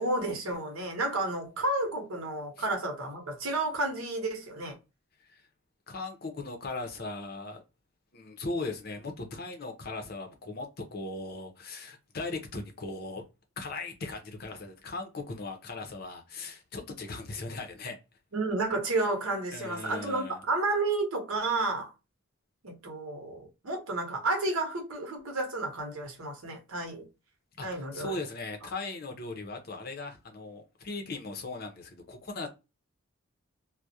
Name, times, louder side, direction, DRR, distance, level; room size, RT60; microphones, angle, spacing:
voice 1, 0.0-4.8 18.3-21.9 22.6-27.0 27.6-28.2, right 2 dB, 80° right, 0.9 m, -31 dB
voice 2, 5.9-7.6 8.1-13.2 13.6-18.0 19.5-20.4 27.6-32.5, left 3 dB, 45° left, 0.5 m, -38 dB
2.3 x 2.1 x 2.6 m
head